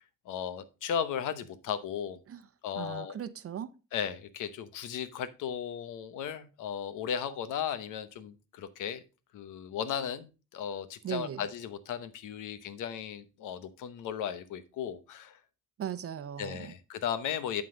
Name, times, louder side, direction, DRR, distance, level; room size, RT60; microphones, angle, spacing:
voice 1, 0.2-2.2 2.6-3.2 3.9-9.0 9.3-15.4 16.4-17.6, left 8 dB, 85° left, 1.0 m, -36 dB
voice 2, 2.7-3.7 11.0-11.4 15.8-16.7, right 9 dB, 50° right, 0.7 m, -38 dB
11.0 x 3.9 x 5.0 m
cardioid pair, 90°, 30 cm